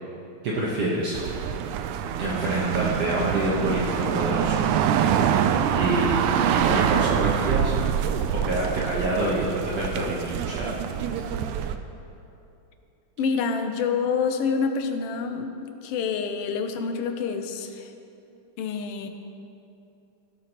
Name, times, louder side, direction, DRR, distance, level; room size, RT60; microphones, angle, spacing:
voice 1, 0.4-1.2 1.7-1.8 2.2-4.6 5.7-7.7 8.3-10.8 11.3-11.4, right 1 dB, 60° right, -6 dB, 2.1 m, -27 dB
sound 1, 1.1-11.8, right 8 dB, 85° right, 2.0 m, -25 dB
voice 2, 13.2-17.9 18.6-19.1, left 5 dB, 75° left, 6 dB, 1.4 m, -27 dB
16.5 x 12.0 x 3.0 m, 2.7 s
omnidirectional pair, 3.4 m